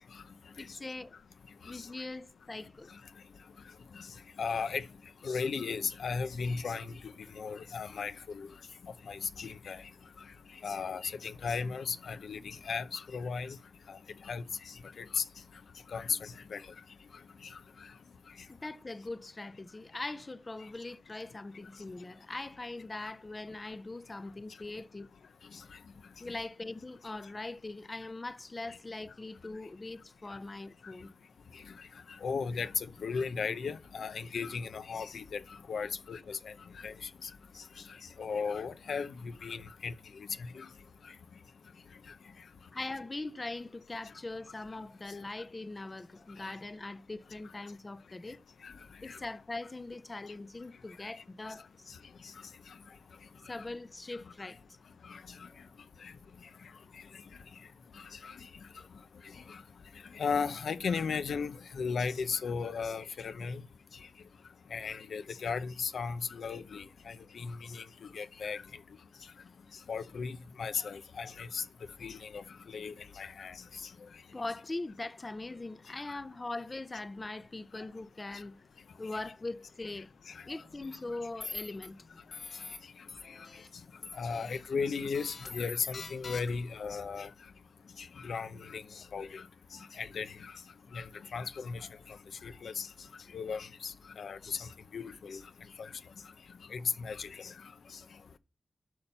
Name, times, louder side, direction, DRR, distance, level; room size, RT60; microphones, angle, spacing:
voice 1, 0.6-1.2 1.6-2.9 18.5-25.1 26.2-31.1 42.7-48.4 49.0-51.9 53.5-54.6 55.5-55.6 58.8-58.9 74.3-78.6 79.0-80.2 80.4-82.3 89.7-89.9, left 2 dB, 25° left, 0.5 m, -41 dB
voice 2, 4.4-4.8 5.2-7.0 7.4-8.5 9.1-9.8 10.6-13.6 13.9-14.0 14.3-15.2 15.9-16.6 32.2-35.4 35.7-36.5 36.8-36.9 37.2-37.3 38.2-39.9 40.6-40.7 48.6-48.7 49.1-49.2 55.1-55.2 56.0-56.1 58.2-58.4 59.5-59.6 60.1-63.6 64.7-67.8 68.1-68.6 69.9-71.6 72.0-73.6 84.1-87.3 88.0-88.8 89.1-89.4 90.0-90.5 90.9-91.1 91.3-91.9 92.4-92.9 93.3-95.4 95.8-95.9 96.7-97.5, left 5 dB, 90° left, 0.7 m, -36 dB
sound 1, 80.8-81.0 81.4-81.9 82.3-82.8 83.1-83.7 84.0-84.6 85.1-86.7, left 4 dB, 60° left, 1.7 m, -44 dB
11.0 x 5.8 x 5.5 m
wide cardioid pair, 115°, 0 cm